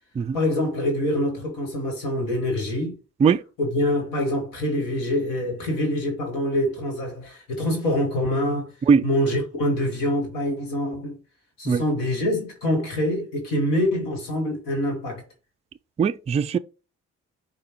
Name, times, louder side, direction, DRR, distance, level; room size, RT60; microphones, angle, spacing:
voice 1, 0.3-3.0 3.6-8.7 9.0-11.2 11.6-15.2, left 1 dB, 75° left, 1.4 m, -25 dB
voice 2, 16.0-16.6, right 6 dB, 20° right, 0.3 m, -19 dB
5.0 x 2.2 x 4.5 m
hypercardioid pair, 40°, 33 cm